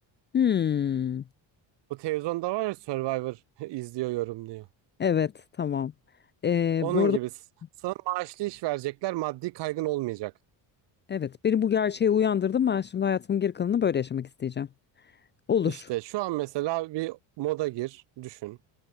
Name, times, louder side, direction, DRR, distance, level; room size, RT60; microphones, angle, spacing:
voice 1, 0.3-1.2 5.0-5.3 5.6-5.9 6.4-7.2 11.1-14.7 15.5-15.9, left 8 dB, 25° left, 0.5 m, -25 dB
voice 2, 1.9-4.7 6.8-7.3 7.8-10.3 15.6-18.6, right 18 dB, 65° right, 1.3 m, -31 dB
cardioid pair, 175°, 44 cm